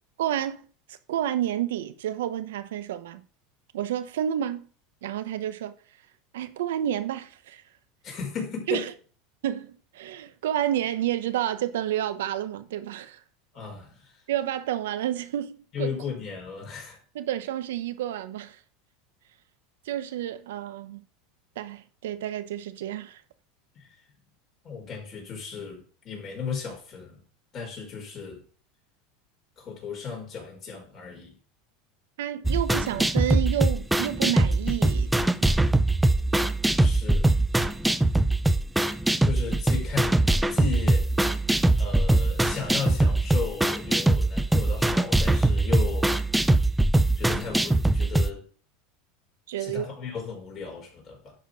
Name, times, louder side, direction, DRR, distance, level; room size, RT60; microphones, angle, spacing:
voice 1, 0.2-0.6 0.9-3.2 3.7-4.7 5.0-5.7 6.3-7.6 8.7-8.9 9.4-13.2 14.3-15.9 17.1-18.6 19.8-21.0 21.6-23.2 32.2-35.1 35.4-35.5 49.5-49.8, right 11 dB, 85° right, 1.0 m, -30 dB
voice 2, 8.0-8.9 13.5-14.2 15.7-17.0 23.7-24.0 24.6-27.2 27.5-28.4 29.6-31.4 36.7-37.4 39.2-41.1 41.8-46.1 47.2-48.4 49.6-51.3, left 5 dB, 35° left, 4.7 m, -35 dB
sound 1, 32.5-48.3, right 2 dB, 5° right, 0.5 m, -22 dB
11.0 x 4.4 x 5.1 m
supercardioid pair, 125°, 0 cm